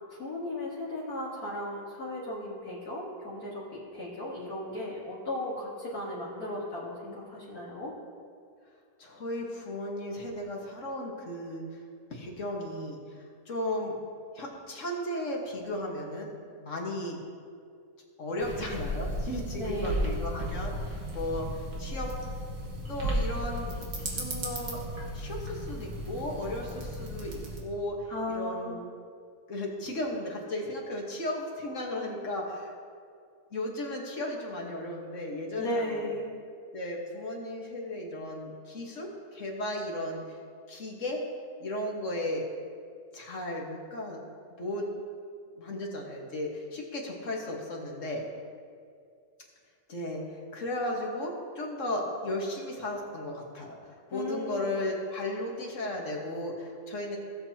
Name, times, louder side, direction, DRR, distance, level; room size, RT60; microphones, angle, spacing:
voice 1, 0.1-7.9 19.5-20.2 28.1-28.8 35.6-36.3 54.1-54.8, left 1 dB, 75° left, -8 dB, 2.2 m, -36 dB
voice 2, 9.0-11.8 12.1-13.9 14.3-16.3 16.6-17.2 18.2-22.1 22.9-24.8 25.1-28.8 29.5-32.7 33.5-36.1 36.7-40.4 40.7-41.2 41.6-42.5 43.1-44.2 44.6-44.9 45.6-48.3 49.9-50.2 50.5-57.2, left 1 dB, 55° left, -1 dB, 1.8 m, -35 dB
sound 1, 18.4-27.6, right 1 dB, 85° right, 2.3 m, -34 dB
17.5 x 7.7 x 2.9 m, 2.3 s
omnidirectional pair, 1.6 m